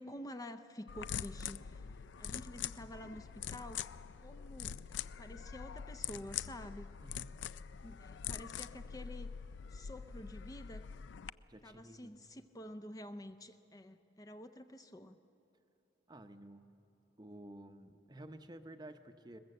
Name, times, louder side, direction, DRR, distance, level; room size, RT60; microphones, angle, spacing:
voice 1, 0.0-1.8 2.2-3.8 4.2-6.9 7.8-9.3 9.7-10.9 11.6-15.2, left 1 dB, 20° left, 8 dB, 0.5 m, -49 dB
sound 1, 0.9-11.3, left 8 dB, 75° left, 0.4 m, -44 dB
voice 2, 7.0-7.4 11.5-12.1 16.1-16.7 17.2-19.4, right 1 dB, 20° right, 8 dB, 0.7 m, -52 dB
21.5 x 21.0 x 7.8 m, 2.9 s
head